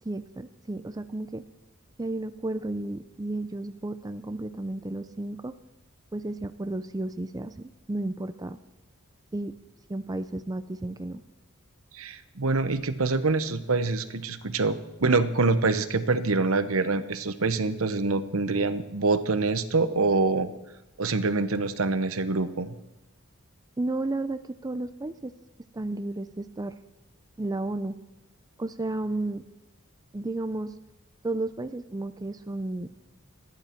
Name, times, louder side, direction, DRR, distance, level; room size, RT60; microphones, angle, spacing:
voice 1, 0.0-1.4 2.0-5.5 6.1-8.6 9.3-9.5 9.9-11.2 23.8-25.3 25.7-26.7 27.4-28.0 28.6-29.4 30.1-30.7 31.2-32.9, right 2 dB, 15° right, 10 dB, 0.5 m, -32 dB
voice 2, 11.9-20.5 21.0-22.7, right 3 dB, 70° right, 11 dB, 1.0 m, -25 dB
28.0 x 11.0 x 4.5 m, 0.97 s
head